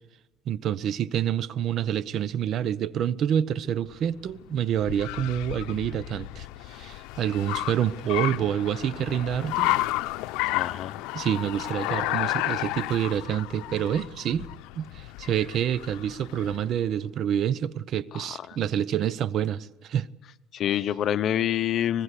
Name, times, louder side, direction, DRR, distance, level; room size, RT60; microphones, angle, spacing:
voice 1, 0.5-9.8 11.1-14.5 14.8-20.1, right 9 dB, 55° right, 0.7 m, -27 dB
Car, 3.8-16.8, left 18 dB, 85° left, 0.7 m, -32 dB
voice 2, 10.5-11.1 18.1-18.6 20.5-22.0, left 10 dB, 50° left, 0.9 m, -27 dB
25.0 x 20.0 x 8.3 m
cardioid pair, 125°, 0 cm